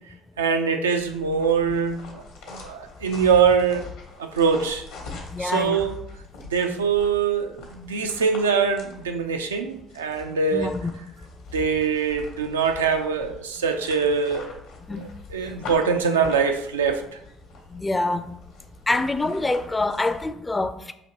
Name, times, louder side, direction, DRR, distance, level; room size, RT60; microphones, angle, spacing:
voice 1, 0.4-2.2 2.5-3.9 4.2-4.9 5.4-5.9 6.5-10.7 11.5-14.6 15.3-17.0, right 6 dB, 85° right, 0.3 m, -23 dB
sound 1, 1.0-20.3, left 3 dB, 70° left, 1.0 m, -43 dB
voice 2, 5.1-5.8 10.5-10.9 14.9-15.1 17.7-18.4 18.9-20.9, left 2 dB, 20° left, 0.4 m, -26 dB
5.0 x 2.8 x 2.8 m
figure-of-eight pair, 50°, 0 cm